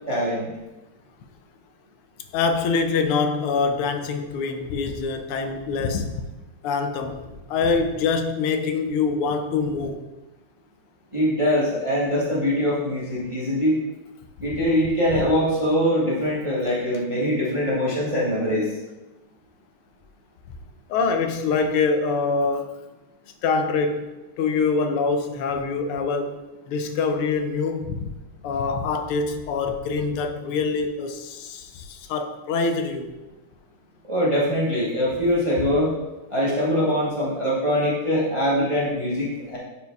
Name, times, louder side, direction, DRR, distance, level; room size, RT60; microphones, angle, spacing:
voice 1, 0.1-0.5 11.1-13.8 14.4-18.7 34.1-35.9 36.3-39.6, equal, 25° right, -6 dB, 0.7 m, -23 dB
voice 2, 2.3-6.2 6.6-7.2 7.5-10.0 20.9-22.8 23.4-24.1 24.4-26.4 26.7-28.1 28.4-33.1, left 4 dB, 85° left, 7 dB, 1.5 m, -24 dB
10.5 x 4.4 x 2.3 m, 1.1 s
omnidirectional pair, 2.4 m